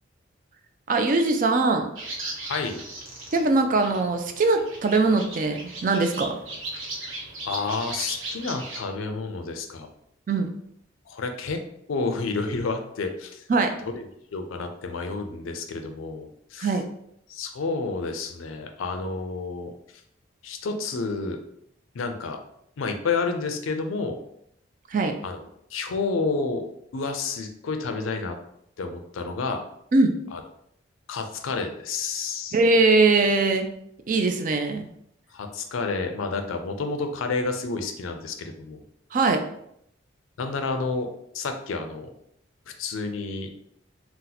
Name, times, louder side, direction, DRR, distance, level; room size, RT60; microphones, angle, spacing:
voice 1, 0.9-1.9 3.3-6.4 10.3-10.5 13.5-13.7 16.6-16.9 24.9-25.1 29.9-30.1 32.5-33.7 34.1-34.9 39.1-39.4, right 3 dB, 40° right, 6 dB, 0.3 m, -21 dB
sound 1, 1.9-8.8, right 2 dB, 85° right, 0.9 m, -37 dB
voice 2, 2.5-2.8 7.4-9.9 11.1-11.6 11.9-13.4 13.9-14.0 14.3-16.8 17.3-19.7 20.4-21.4 21.9-22.4 22.8-24.2 25.2-26.6 26.9-28.4 28.8-29.6 30.3-30.4 31.1-32.6 35.3-38.8 40.4-41.1 41.3-42.1 42.7-43.5, left 4 dB, 85° left, 5 dB, 0.4 m, -30 dB
2.8 x 2.1 x 3.9 m, 0.74 s
head